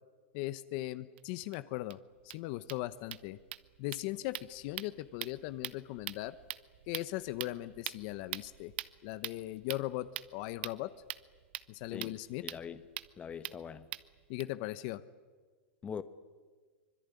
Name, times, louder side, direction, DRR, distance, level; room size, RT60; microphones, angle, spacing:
voice 1, 0.3-2.0 2.2-3.4 3.8-6.4 6.9-8.7 9.0-10.9 11.7-12.4 14.3-15.0, left 17 dB, 45° left, 1.0 m, -38 dB
sound 1, 1.2-1.3 1.5-1.6 1.9-2.0 2.2-14.4, right 16 dB, 60° right, 1.0 m, -45 dB
voice 2, 12.4-12.9 13.2-13.9 15.8-16.0, left 7 dB, 20° left, 1.1 m, -42 dB
25.0 x 21.5 x 9.9 m
hypercardioid pair, 135°, 7 cm